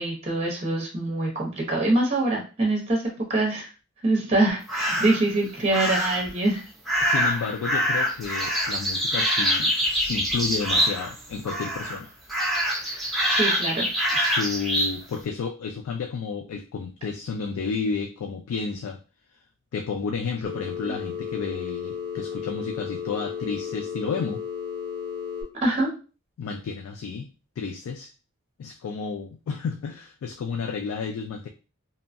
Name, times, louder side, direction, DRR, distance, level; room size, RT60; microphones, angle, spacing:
voice 1, 0.0-3.0 3.3-3.7 4.0-6.6 12.8-13.9 20.8-20.9 25.6-25.9, right 2 dB, 30° right, -2 dB, 0.8 m, -24 dB
sound 1, 4.7-5.2 5.7-6.3 6.8-11.2 11.4-12.0 12.3-14.9, equal, ahead, 0.6 m, -25 dB
voice 2, 7.0-12.1 14.1-19.0 19.7-24.4 26.4-27.3 27.6-28.1 28.6-31.5, left 5 dB, 90° left, 5 dB, 0.3 m, -31 dB
Telephone, 20.4-25.4, left 7 dB, 50° left, 1.1 m, -33 dB
2.7 x 2.2 x 2.5 m, 0.34 s
head